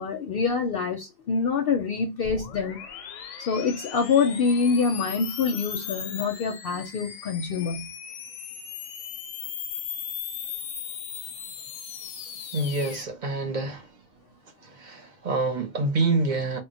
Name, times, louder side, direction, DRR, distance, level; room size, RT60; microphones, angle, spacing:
voice 1, 0.0-2.8 3.5-7.9, left 5 dB, 60° left, 0.7 m, -25 dB
sound 1, 2.2-13.0, left 8 dB, 90° left, 0.9 m, -37 dB
voice 2, 12.5-13.9 14.6-16.6, right 3 dB, 45° right, 0.7 m, -27 dB
2.2 x 2.1 x 3.8 m
omnidirectional pair, 1.3 m